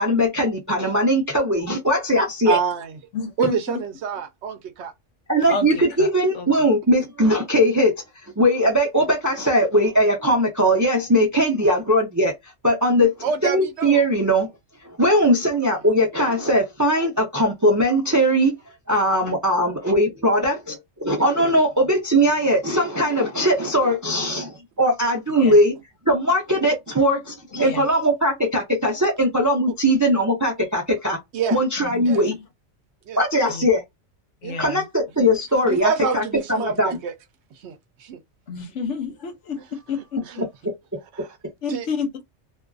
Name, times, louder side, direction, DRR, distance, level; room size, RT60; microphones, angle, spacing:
voice 1, 0.0-2.6 5.3-7.9 8.4-12.3 12.6-13.1 13.4-14.5 15.0-18.5 18.9-25.7 26.1-31.2 31.5-32.4 33.2-33.8 34.6-36.2 36.5-36.9, equal, 30° right, 0.3 m, -20 dB
voice 2, 2.5-3.0 3.4-4.9 13.2-14.0 15.6-15.8 31.3-31.6 32.1-32.2 33.1-33.2 34.4-34.6 35.2-35.3 35.6-37.1 37.5-38.2 40.2-40.5 41.1-41.3 41.7-41.9, right 6 dB, 70° right, 0.8 m, -27 dB
voice 3, 3.1-3.8 5.5-6.1 6.3-6.5 25.4-25.5 27.6-27.8 31.8-32.3 33.5-33.7 34.4-34.9 38.5-40.4 41.6-42.1, left 5 dB, 80° left, 1.1 m, -30 dB
2.6 x 2.4 x 2.3 m
omnidirectional pair, 1.3 m